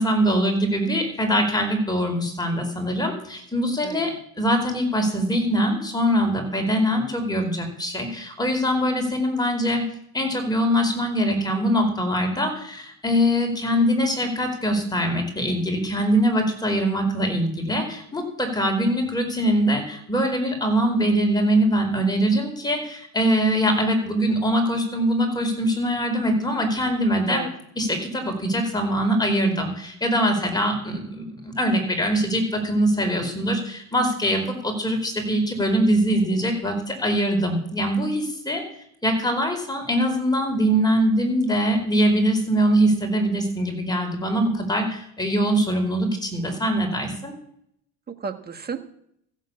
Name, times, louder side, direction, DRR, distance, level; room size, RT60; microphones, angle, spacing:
voice 1, 0.0-9.8 10.1-27.4 27.8-38.6 39.0-47.3, equal, 10° left, 3 dB, 4.6 m, -23 dB
voice 2, 3.8-4.1 27.3-27.5 48.1-48.9, right 6 dB, 30° right, 7 dB, 1.6 m, -33 dB
14.5 x 7.5 x 8.5 m, 0.70 s
cardioid pair, 110°, 35 cm